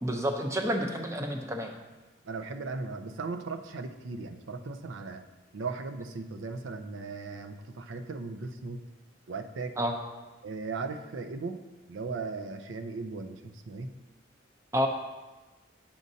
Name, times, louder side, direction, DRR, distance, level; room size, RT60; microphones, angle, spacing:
voice 1, 0.0-1.7 9.8-9.9 14.7-14.9, equal, 15° right, 4 dB, 0.5 m, -29 dB
voice 2, 2.3-5.2 5.5-8.8 9.3-9.8 10.4-11.6 11.9-13.9, right 4 dB, 85° right, 8 dB, 0.5 m, -37 dB
8.6 x 6.3 x 2.7 m, 1.2 s
head